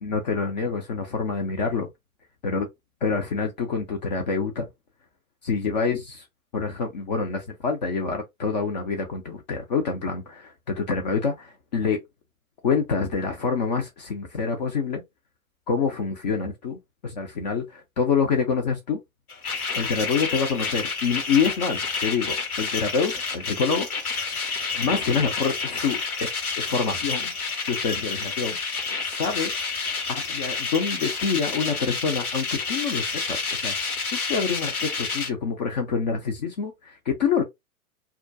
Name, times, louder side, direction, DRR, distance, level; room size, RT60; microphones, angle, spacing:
voice 1, 0.0-1.9 2.4-2.7 3.0-4.7 5.4-6.3 6.5-12.0 12.6-15.0 15.7-19.0 19.7-23.9 24.8-27.3 27.7-28.6 29.0-29.5 30.1-37.4, left 5 dB, 30° left, 0.4 m, -26 dB
sound 1, 19.3-35.3, left 4 dB, 80° left, 1.0 m, -29 dB
2.3 x 2.1 x 2.6 m
figure-of-eight pair, 105°, 43 cm